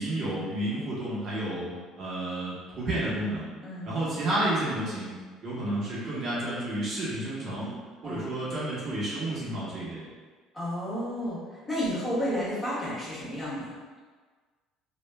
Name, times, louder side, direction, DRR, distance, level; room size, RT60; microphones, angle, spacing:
voice 1, 0.0-3.5 3.8-7.7 8.0-10.1, right 1 dB, 50° right, -7 dB, 0.9 m, -31 dB
voice 2, 10.5-13.7, equal, 20° left, -9 dB, 1.4 m, -32 dB
3.2 x 2.3 x 2.2 m, 1.5 s
hypercardioid pair, 70°, 0 cm